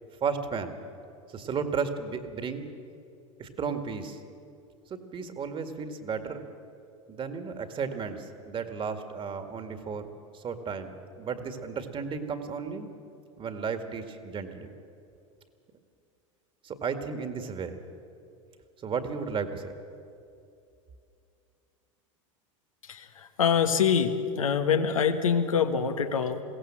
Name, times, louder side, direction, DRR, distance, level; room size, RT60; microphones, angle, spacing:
voice 1, 0.2-0.8 1.3-2.7 3.4-4.2 4.9-6.4 7.1-10.1 10.3-12.9 13.4-14.7 16.6-17.8 18.8-19.7, right 5 dB, 30° right, 8 dB, 2.0 m, -34 dB
voice 2, 22.8-26.4, left 7 dB, 85° left, 6 dB, 1.4 m, -25 dB
22.0 x 17.0 x 7.6 m, 2.5 s
hypercardioid pair, 90°, 17 cm